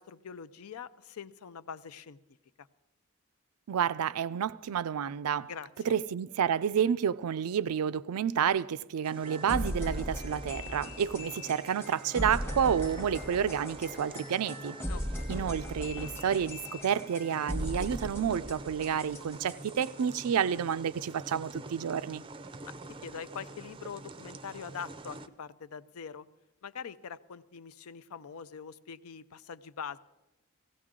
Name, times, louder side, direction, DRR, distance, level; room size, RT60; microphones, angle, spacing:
voice 1, 0.0-2.2 2.6-2.7 5.5-5.9 14.9-15.4 23.0-26.2 26.6-30.0, left 6 dB, 80° left, 0.5 m, -43 dB
voice 2, 3.7-5.5 5.9-14.8 15.3-22.2, right 8 dB, 90° right, 0.4 m, -30 dB
sound 1, 9.0-25.3, right 2 dB, 25° right, 0.4 m, -47 dB
sound 2, 9.2-20.6, equal, 10° left, 0.9 m, -38 dB
16.5 x 16.5 x 3.7 m
head